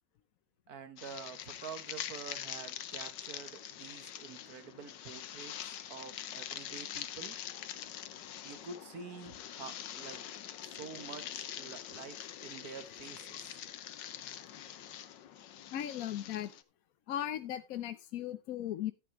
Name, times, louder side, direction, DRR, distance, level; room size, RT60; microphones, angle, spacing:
voice 1, 0.7-7.4 8.4-10.2 10.6-13.6, right 6 dB, 60° right, 1.7 m, -48 dB
sound 1, 1.0-16.6, left 10 dB, 90° left, 1.5 m, -44 dB
voice 2, 15.7-16.5 17.1-18.9, left 11 dB, 65° left, 0.9 m, -37 dB
13.5 x 8.7 x 3.0 m
omnidirectional pair, 1.9 m